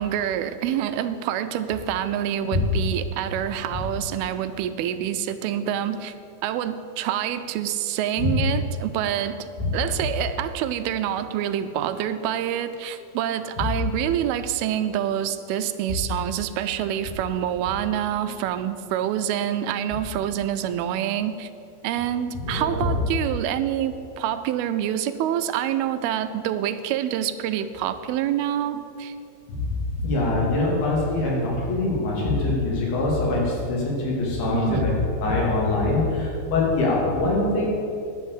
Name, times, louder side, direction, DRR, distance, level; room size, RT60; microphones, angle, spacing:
voice 1, 0.0-6.1 6.4-9.5 9.7-21.5 21.8-29.2 34.5-34.9, right 10 dB, 85° right, 11 dB, 2.5 m, -26 dB
voice 2, 22.4-22.9 29.5-29.7 30.0-34.9 35.2-37.6, left 2 dB, 85° left, -4 dB, 4.7 m, -23 dB
10.5 x 7.4 x 8.3 m, 2.5 s
omnidirectional pair, 4.3 m